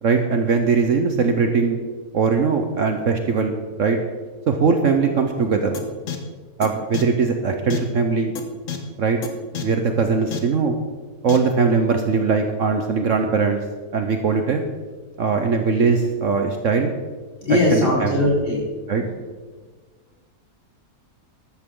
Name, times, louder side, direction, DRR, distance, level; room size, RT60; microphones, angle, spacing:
voice 1, 0.0-1.8 2.1-4.0 4.5-5.8 6.6-8.3 9.0-9.2 9.6-10.8 11.2-13.6 13.9-14.6 15.2-16.9 17.7-18.2 18.9-19.0, right 5 dB, 55° right, 5 dB, 1.1 m, -20 dB
sound 1, 5.7-5.8 6.1-6.2 6.6-6.7 6.9-7.0 7.7-7.8 8.4-8.5 8.7-8.8 9.2-9.3 9.5-9.6 10.3-10.4 11.3-11.4, left 8 dB, 55° left, 1.5 m, -27 dB
voice 2, 17.4-18.6 19.0-19.1, left 1 dB, 30° left, -6 dB, 4.7 m, -20 dB
13.0 x 13.0 x 3.8 m, 1.4 s
omnidirectional pair, 1.7 m